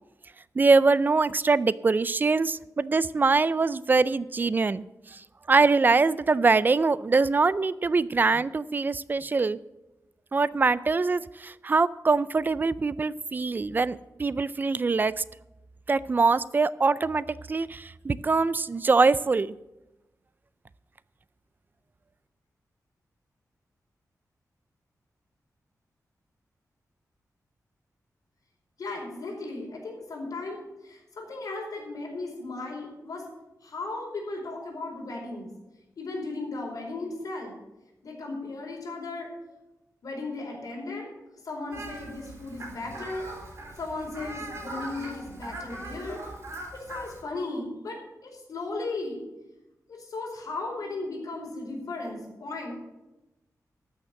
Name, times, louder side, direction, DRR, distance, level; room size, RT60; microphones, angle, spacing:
voice 1, 0.6-4.8 5.1-5.2 5.5-9.6 10.3-15.2 15.9-19.5, right 4 dB, 30° right, 18 dB, 0.4 m, -23 dB
voice 2, 28.8-33.2 33.6-35.5 36.0-37.5 38.0-39.3 40.0-43.3 43.8-46.3 46.7-48.0 48.3-49.2 49.9-52.8, left 2 dB, 70° left, -2 dB, 4.7 m, -36 dB
Fowl, 41.7-47.2, right 1 dB, 50° right, 3.6 m, -41 dB
13.0 x 6.4 x 7.6 m, 0.98 s
wide cardioid pair, 150°, 6 cm